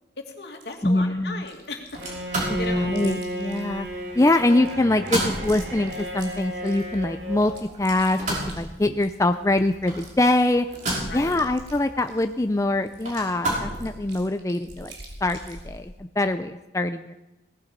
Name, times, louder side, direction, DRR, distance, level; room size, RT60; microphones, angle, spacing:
voice 1, 0.2-1.8 2.2-2.3 2.6-2.9 11.1-11.4, left 3 dB, 70° left, 3 dB, 2.5 m, -36 dB
Chewing mastication, 0.6-0.7 1.4-2.1 2.4-3.9 4.4-7.0 7.4-9.3 9.5-9.6 9.8-12.3 12.9-15.9, right 2 dB, 70° right, 3.9 m, -45 dB
voice 2, 0.8-1.4 2.5-3.9 4.1-7.5 7.8-8.2 8.5-10.7 11.1-14.9 15.2-17.1, left 2 dB, 15° left, 8 dB, 0.5 m, -23 dB
sound 1, 1.9-14.2, right 1 dB, 45° right, 5.7 m, -34 dB
Bowed string instrument, 2.0-7.5, right 1 dB, 85° right, 2.8 m, -34 dB
18.0 x 15.0 x 5.4 m, 1.0 s
head